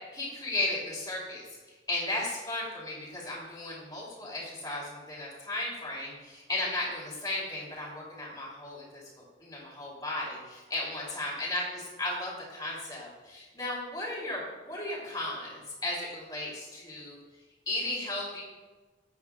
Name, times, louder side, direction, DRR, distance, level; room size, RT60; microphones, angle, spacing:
voice 1, 0.1-1.4 1.9-9.1 9.4-17.2 17.7-18.4, left 2 dB, 20° left, -5 dB, 3.1 m, -35 dB
14.5 x 8.6 x 2.4 m, 1.3 s
head